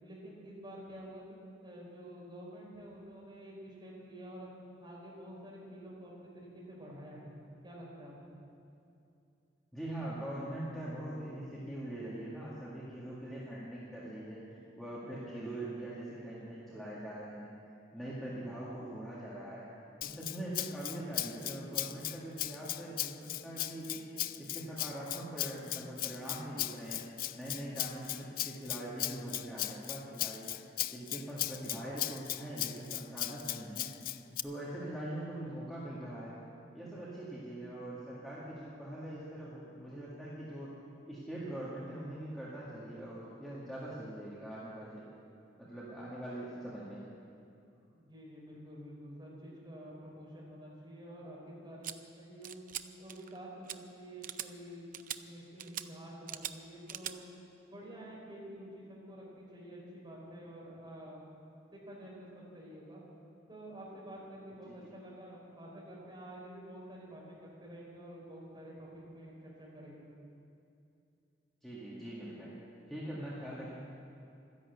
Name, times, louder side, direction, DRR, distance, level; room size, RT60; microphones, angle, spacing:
voice 1, 0.0-1.4 1.6-4.5 4.8-7.3 7.6-8.4 47.9-52.6 53.0-54.9 55.3-57.3 57.7-61.2 61.7-63.0 63.5-70.1, right 1 dB, 25° right, -4 dB, 4.4 m, -49 dB
voice 2, 9.7-17.5 17.9-19.7 20.0-24.0 24.4-30.5 30.9-33.9 34.4-36.4 36.7-40.7 41.1-45.0 45.6-47.0 64.7-64.8 71.6-72.6 72.9-73.7, right 1 dB, ahead, -9 dB, 2.0 m, -42 dB
Rattle (instrument), 20.0-34.4, left 14 dB, 50° left, 0.4 m, -38 dB
sound 1, 51.8-51.9 52.4-52.8 53.1-53.4 53.7-53.8 54.2-54.5 54.9-55.2 55.6-55.9 56.3-56.5 56.9-57.1, right 11 dB, 45° right, 0.5 m, -40 dB
13.0 x 11.0 x 8.1 m, 2.7 s
head